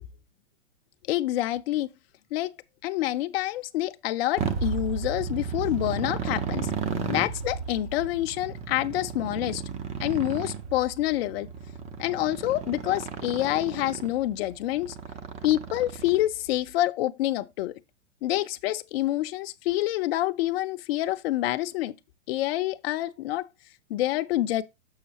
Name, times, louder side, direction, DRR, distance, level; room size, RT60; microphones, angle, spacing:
voice 1, 1.1-1.9 2.3-2.5 2.8-6.7 7.1-9.6 10.0-11.5 12.0-15.0 15.4-17.7 18.2-21.9 22.3-23.5 23.9-24.6, left 15 dB, 55° left, 0.6 m, -27 dB
Motorcycle, 4.4-16.5, right 6 dB, 20° right, 0.6 m, -34 dB
6.6 x 6.4 x 2.8 m
hypercardioid pair, 145°, 36 cm